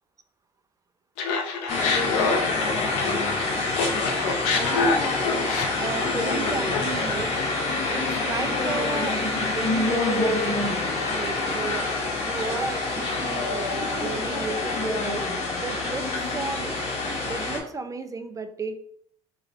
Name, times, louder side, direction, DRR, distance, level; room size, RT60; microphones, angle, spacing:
Laughter, 1.2-3.4 3.7-7.0, left 4 dB, 75° left, 0.7 m, -27 dB
sound 1, 1.7-17.6, left 3 dB, 55° left, 1.8 m, -26 dB
voice 1, 4.5-5.2 5.8-7.3 7.9-9.2 9.5-10.8 11.1-11.9 12.2-15.3 15.6-16.1 16.3-16.7 17.3-18.7, right 4 dB, 25° right, 8 dB, 0.6 m, -33 dB
3.9 x 3.2 x 3.9 m, 0.65 s
supercardioid pair, 75°, 14 cm